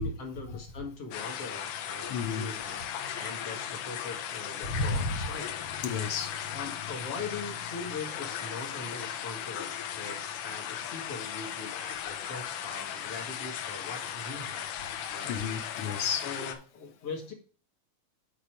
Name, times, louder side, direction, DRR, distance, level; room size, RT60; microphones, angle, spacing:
voice 1, 0.0-5.5 6.5-14.7 15.1-15.4 16.2-17.3, left 4 dB, 50° left, 2 dB, 2.4 m, -41 dB
sound 1, 1.1-16.5, left 9 dB, 80° left, 2.4 m, -37 dB
voice 2, 2.1-2.5 4.6-5.2 5.8-6.3 14.9-16.3, left 4 dB, 65° left, 8 dB, 1.4 m, -32 dB
8.4 x 5.0 x 4.5 m, 0.38 s
omnidirectional pair, 3.7 m